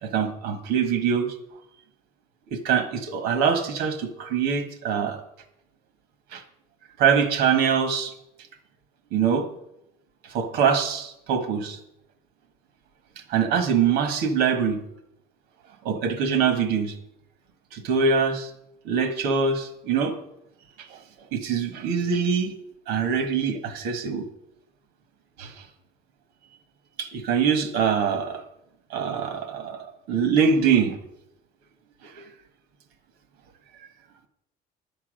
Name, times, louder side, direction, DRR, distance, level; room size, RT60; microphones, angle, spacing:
voice 1, 0.0-1.3 2.5-5.2 6.3-6.4 7.0-8.1 9.1-9.5 10.3-11.8 13.3-14.8 15.8-16.9 17.7-18.5 18.8-20.1 20.9-21.0 21.3-22.5 22.9-24.2 25.4-25.5 27.0-28.4 28.9-31.0 32.0-32.3, right 6 dB, 80° right, 9 dB, 1.5 m, -23 dB
10.5 x 7.3 x 6.4 m, 0.82 s
cardioid pair, 170°, 16 cm